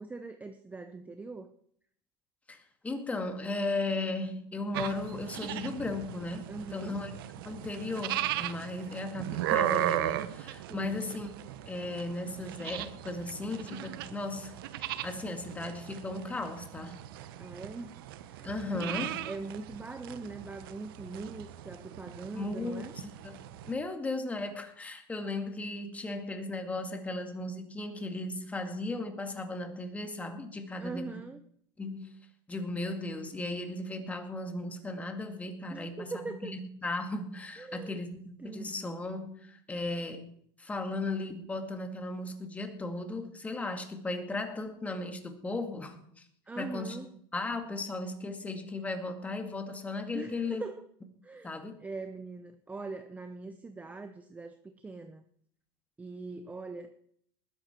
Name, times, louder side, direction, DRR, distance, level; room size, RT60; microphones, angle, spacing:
voice 1, 0.0-1.5 6.5-7.0 10.7-11.0 17.4-19.0 19.2-22.9 30.8-31.4 35.7-36.6 37.6-38.0 38.4-38.7 46.5-47.1 50.1-50.8 51.2-51.5 51.8-55.2 56.0-56.9, right 3 dB, 15° right, 7 dB, 0.8 m, -42 dB
voice 2, 2.5-7.1 7.5-11.3 11.7-17.0 18.4-19.2 22.3-31.2 31.8-32.2 32.5-40.3 40.6-46.2 46.6-47.0 47.3-50.6 51.4-51.8, left 2 dB, 10° left, 6 dB, 2.2 m, -36 dB
sound 1, 4.7-23.7, right 13 dB, 85° right, 1.0 m, -37 dB
20.0 x 10.5 x 4.5 m, 0.66 s
supercardioid pair, 130°, 12 cm